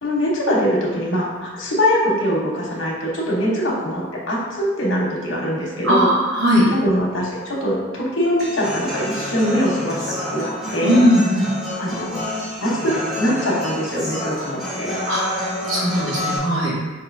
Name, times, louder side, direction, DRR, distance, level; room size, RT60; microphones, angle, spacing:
voice 1, 0.0-6.1 6.7-11.0 11.8-12.3 12.6-14.9, equal, 80° left, -4 dB, 1.1 m, -22 dB
voice 2, 5.8-6.7 10.8-11.5 15.0-15.2 15.7-16.7, equal, 85° right, -6 dB, 1.3 m, -18 dB
Human voice / Acoustic guitar, 8.4-16.4, left 1 dB, 5° right, 1.4 m, -28 dB
5.3 x 2.8 x 2.6 m, 1.3 s
head